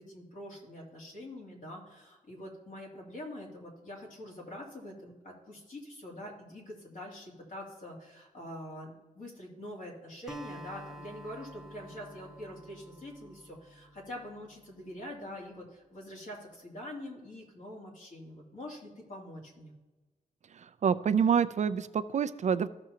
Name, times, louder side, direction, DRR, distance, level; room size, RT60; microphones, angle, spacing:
voice 1, 0.0-19.7, left 1 dB, 60° left, -2 dB, 2.7 m, -45 dB
Acoustic guitar, 10.3-14.8, equal, 5° right, 0.7 m, -49 dB
voice 2, 20.8-22.7, right 7 dB, 50° right, 13 dB, 0.4 m, -27 dB
15.0 x 6.0 x 2.8 m, 1.2 s
wide cardioid pair, 130°, 15 cm